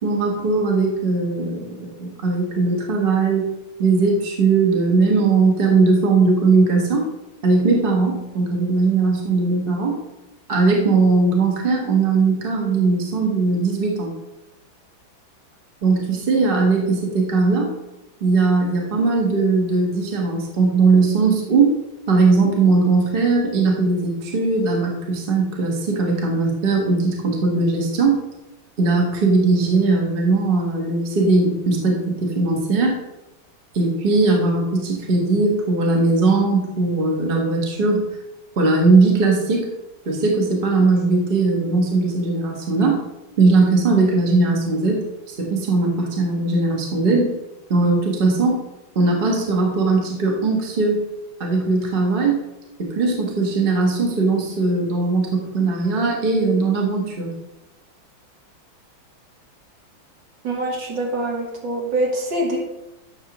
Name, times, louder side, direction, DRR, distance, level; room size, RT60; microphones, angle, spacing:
voice 1, 0.0-3.4 3.8-7.0 7.4-9.9 10.5-14.1 15.8-17.7 18.2-21.8 22.1-28.2 28.8-33.0 33.7-38.0 38.6-39.7 40.0-43.0 43.4-45.0 45.4-47.3 47.7-48.6 48.9-51.0 51.4-52.4 52.8-57.3, right 3 dB, 30° right, 0 dB, 1.4 m, -19 dB
voice 2, 60.4-62.6, right 1 dB, 65° right, -1 dB, 2.1 m, -24 dB
10.5 x 6.6 x 3.0 m, 0.94 s
omnidirectional pair, 2.2 m